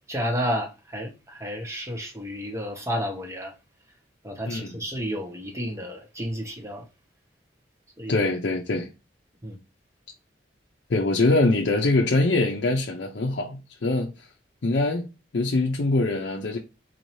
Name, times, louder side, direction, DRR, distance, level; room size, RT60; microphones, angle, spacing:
voice 1, 0.1-3.5 4.2-6.9 8.0-8.2 9.4-9.6, equal, 15° right, 1.0 m, -31 dB
voice 2, 8.1-8.9 10.9-14.3 14.6-15.1 15.3-16.6, left 2 dB, 70° left, 0.6 m, -23 dB
4.2 x 2.7 x 3.1 m
head